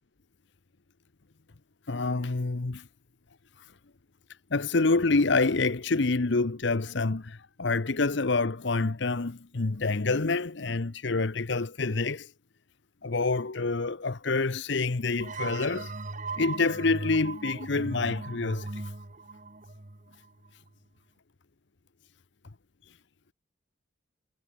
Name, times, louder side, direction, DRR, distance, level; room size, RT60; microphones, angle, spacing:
voice 1, 1.9-2.9 4.5-12.3 13.0-15.9 16.4-18.9, left 3 dB, 60° left, 0.9 m, -27 dB
sound 1, 15.2-20.7, right 3 dB, 40° right, 1.3 m, -38 dB
head